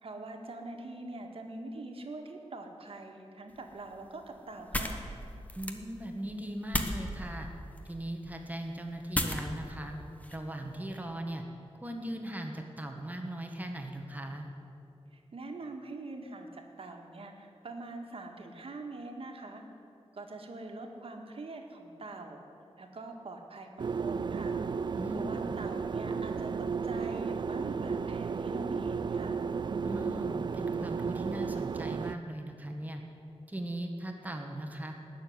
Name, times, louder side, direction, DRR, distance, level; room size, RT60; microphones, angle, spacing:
voice 1, 0.0-5.0 15.1-19.6 20.1-22.4 22.8-24.6 25.2-29.4, right 2 dB, 60° right, 3 dB, 1.8 m, -44 dB
sound 1, 3.5-11.0, left 1 dB, 15° left, 1.2 m, -38 dB
voice 2, 5.6-7.5 7.9-9.9 10.3-11.4 11.8-14.5 25.0-25.5 29.8-33.0 33.5-34.9, right 1 dB, 15° right, 3 dB, 1.4 m, -39 dB
sound 2, 23.8-32.1, right 5 dB, 45° right, 0.3 m, -33 dB
19.0 x 6.9 x 9.5 m, 2.7 s
wide cardioid pair, 130°, 11 cm